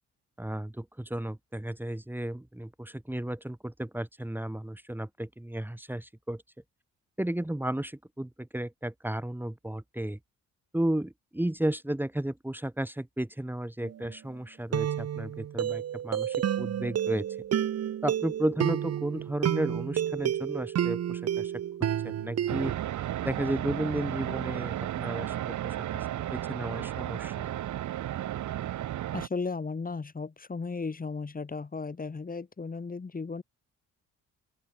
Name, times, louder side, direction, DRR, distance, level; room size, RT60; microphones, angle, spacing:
voice 1, 0.4-6.4 7.2-10.2 10.7-17.3 18.0-21.5 21.8-22.8 23.2-27.5, right 1 dB, 5° right, 3.7 m, -33 dB
sound 1, 13.8-14.1 14.7-22.7, right 10 dB, 55° right, 1.3 m, -30 dB
sound 2, 22.5-29.3, right 12 dB, 75° right, 2.6 m, -33 dB
voice 2, 29.1-33.4, left 4 dB, 30° left, 4.4 m, -35 dB
open air
cardioid pair, 90°, 30 cm